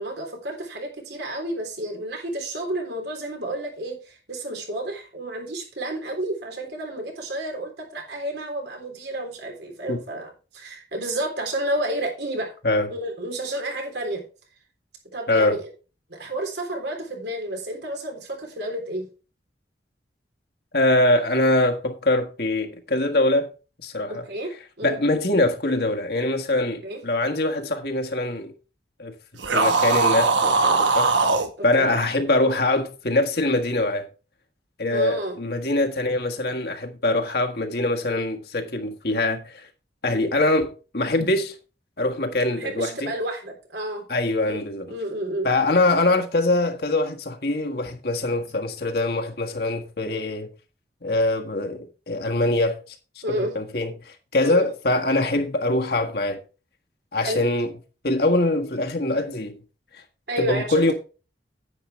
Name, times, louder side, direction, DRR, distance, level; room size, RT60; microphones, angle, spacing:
voice 1, 0.0-12.5 12.9-14.2 15.1-15.7 16.1-19.1 24.1-24.5 24.8-25.0 26.8-27.0 31.6-31.9 34.9-35.4 42.2-44.0 44.5-44.6 44.9-45.5 53.2-53.5 54.4-54.7 57.2-57.4 60.3-60.9, right 1 dB, 70° right, 3.6 m, -31 dB
voice 2, 15.3-15.6 20.7-23.5 23.8-24.2 24.8-28.5 29.0-29.1 29.5-31.1 31.6-34.1 34.8-39.7 40.0-41.5 42.0-43.1 44.1-44.9 45.4-50.5 51.0-52.8 53.3-53.9 54.3-56.4 57.1-57.7 58.0-59.5 60.4-60.9, left 2 dB, 60° left, 1.6 m, -23 dB
sound 1, 29.4-31.5, right 3 dB, 85° right, 1.2 m, -20 dB
10.0 x 9.2 x 3.3 m
head